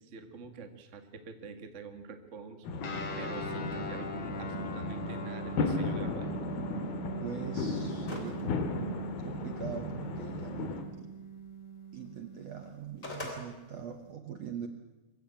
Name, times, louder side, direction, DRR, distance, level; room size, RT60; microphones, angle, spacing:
voice 1, 0.0-2.7 3.2-6.5, right 4 dB, 45° right, 7 dB, 0.9 m, -46 dB
sound 1, 2.6-10.8, left 3 dB, 75° left, 3.6 m, -35 dB
Guitar, 2.8-12.7, right 2 dB, 60° left, 4.1 m, -41 dB
voice 2, 7.2-8.6 9.2-11.1 11.9-14.7, right 8 dB, 65° right, 6 dB, 1.7 m, -42 dB
sound 2, 8.1-8.4 8.8-8.9 12.6-13.4, left 2 dB, 20° left, 3.2 m, -39 dB
24.0 x 15.0 x 8.8 m, 1.1 s
omnidirectional pair, 4.5 m